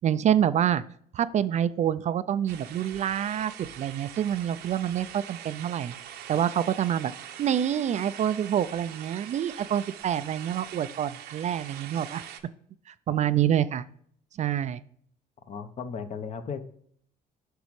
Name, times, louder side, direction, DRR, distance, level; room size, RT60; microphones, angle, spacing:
voice 1, 0.0-0.8 1.1-5.9 6.3-7.1 7.4-12.2 13.1-13.8 14.4-14.8, right 10 dB, 45° right, 14 dB, 0.4 m, -27 dB
sound 1, 2.5-12.4, right 10 dB, 70° right, 0.8 m, -43 dB
voice 2, 15.5-16.6, left 6 dB, 40° left, 9 dB, 0.9 m, -36 dB
8.0 x 6.1 x 3.2 m, 0.62 s
cardioid pair, 110°, 17 cm